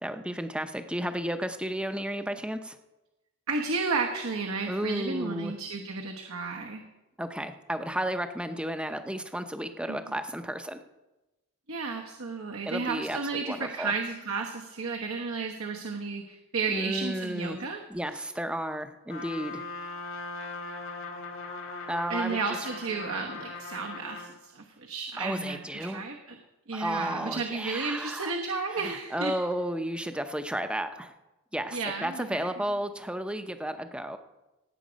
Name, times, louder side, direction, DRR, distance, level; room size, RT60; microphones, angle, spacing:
voice 1, 0.0-2.8 4.7-5.5 7.2-10.8 12.6-13.9 16.7-17.6 17.9-19.6 21.9-22.6 25.2-26.0 26.7-28.3 28.8-31.1 31.5-34.2, right 1 dB, 5° right, 8 dB, 0.6 m, -33 dB
voice 2, 3.5-6.8 9.9-10.1 11.7-17.8 18.1-18.2 22.1-26.4 26.7-29.4 31.7-32.5, right 4 dB, 75° right, 2 dB, 1.2 m, -33 dB
Trumpet, 19.1-24.4, left 3 dB, 60° left, 1.6 m, -39 dB
17.5 x 8.3 x 5.2 m, 1.0 s
head